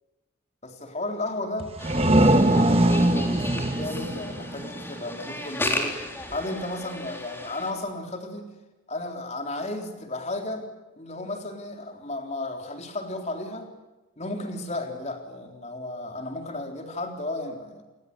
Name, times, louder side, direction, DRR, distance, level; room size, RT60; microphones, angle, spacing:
voice 1, 0.6-1.7 2.1-6.0 6.3-8.5 8.9-10.7 11.0-13.7 14.2-17.8, left 2 dB, 35° left, 4 dB, 3.7 m, -34 dB
sound 1, 1.6-5.2, right 1 dB, 30° right, 1.3 m, -22 dB
sound 2, 1.8-7.7, left 1 dB, 10° left, 3.6 m, -34 dB
29.0 x 21.0 x 8.2 m, 1.1 s
head